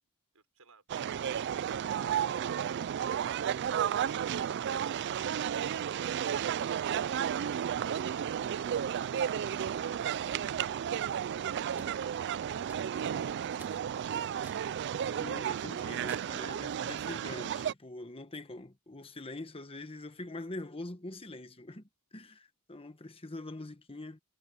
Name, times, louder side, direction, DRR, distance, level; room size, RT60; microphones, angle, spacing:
voice 1, 0.3-3.4 11.6-14.3, right 4 dB, 85° right, 5.8 m, -61 dB
sound 1, 0.9-17.7, right 9 dB, 55° right, 0.3 m, -33 dB
sound 2, 11.8-12.0 12.7-13.1 13.6-13.8 14.4-14.7 15.2-15.3 16.1-16.5, right 2 dB, 10° right, 2.0 m, -53 dB
voice 2, 15.2-24.2, left 2 dB, 25° left, 1.2 m, -44 dB
head